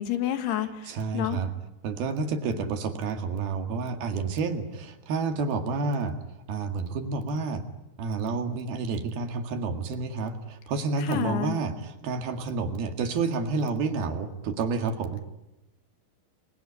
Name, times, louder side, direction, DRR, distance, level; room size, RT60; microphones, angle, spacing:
voice 1, 0.0-1.4 11.0-11.6, left 11 dB, 80° left, 9 dB, 3.6 m, -29 dB
voice 2, 0.9-1.5 1.8-6.2 6.5-7.6 8.0-15.2, right 4 dB, 70° right, 7 dB, 3.8 m, -29 dB
27.5 x 22.0 x 9.8 m, 0.95 s
omnidirectional pair, 4.7 m